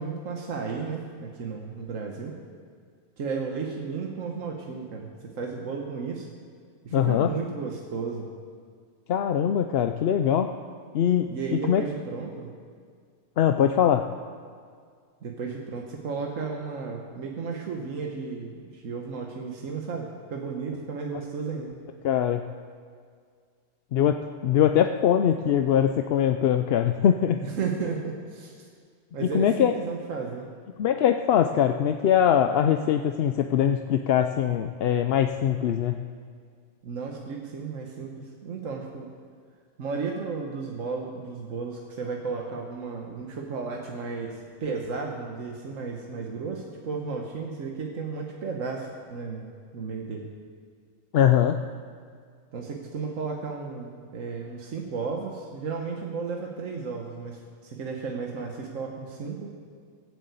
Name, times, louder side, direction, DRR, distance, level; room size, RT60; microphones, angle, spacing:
voice 1, 0.0-2.3 3.2-6.3 6.8-8.3 11.3-12.5 15.2-21.8 27.3-28.7 29.1-30.5 36.8-39.1 39.8-50.3 52.5-59.5, right 4 dB, 80° right, 1 dB, 1.6 m, -34 dB
voice 2, 6.9-7.3 9.1-10.5 10.9-11.3 11.5-11.8 13.4-14.1 22.0-22.4 23.9-27.4 29.2-29.7 30.8-36.0 51.1-51.6, left 9 dB, 60° left, 7 dB, 0.7 m, -22 dB
20.0 x 8.1 x 8.2 m, 2.1 s
omnidirectional pair, 1.3 m